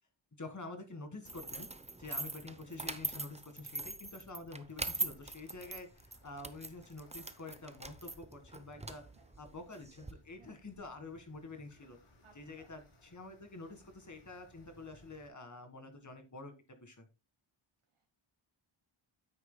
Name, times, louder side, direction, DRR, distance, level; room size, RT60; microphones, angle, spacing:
voice 1, 0.4-1.7 2.0-9.0 9.4-12.0 12.4-16.5 16.8-17.1, left 2 dB, 35° left, 6 dB, 1.9 m, -48 dB
sound 1, 1.2-10.1, right 2 dB, 15° right, 0.7 m, -42 dB
sound 2, 4.7-15.3, left 1 dB, 85° left, 3.6 m, -64 dB
voice 2, 8.7-9.3 10.1-10.6 12.2-12.7 17.9-18.1, right 5 dB, 85° right, 0 dB, 1.9 m, -65 dB
9.6 x 8.5 x 2.3 m, 0.27 s
wide cardioid pair, 145°, 50 cm